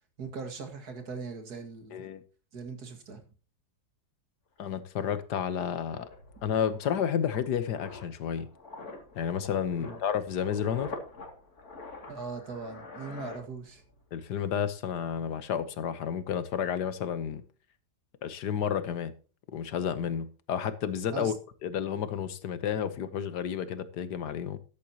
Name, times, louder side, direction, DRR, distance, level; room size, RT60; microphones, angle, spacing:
voice 1, 0.2-2.0 2.5-3.2 9.8-10.0 12.1-13.8 21.1-21.3, right 4 dB, 70° right, 6 dB, 2.3 m, -40 dB
voice 2, 1.9-2.2 4.6-6.1 6.4-8.5 9.2-10.9 14.1-17.4 18.2-19.1 19.5-21.3 21.6-24.6, left 8 dB, 80° left, 13 dB, 1.6 m, -31 dB
sound 1, 4.6-4.7 5.0-14.0 14.3-14.6, left 3 dB, 65° left, 3.0 m, -46 dB
13.5 x 10.5 x 2.9 m, 0.36 s
omnidirectional pair, 1.8 m